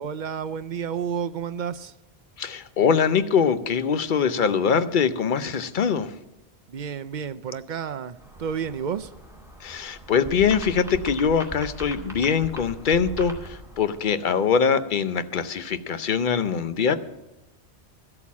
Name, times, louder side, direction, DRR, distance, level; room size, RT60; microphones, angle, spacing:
voice 1, 0.0-1.9 6.7-9.1, right 7 dB, 55° right, 0.6 m, -31 dB
voice 2, 2.4-6.1 9.6-17.0, left 6 dB, 50° left, 0.8 m, -23 dB
sound 1, 8.2-14.0, right 1 dB, 5° right, 2.2 m, -40 dB
13.0 x 8.5 x 7.3 m
omnidirectional pair, 1.1 m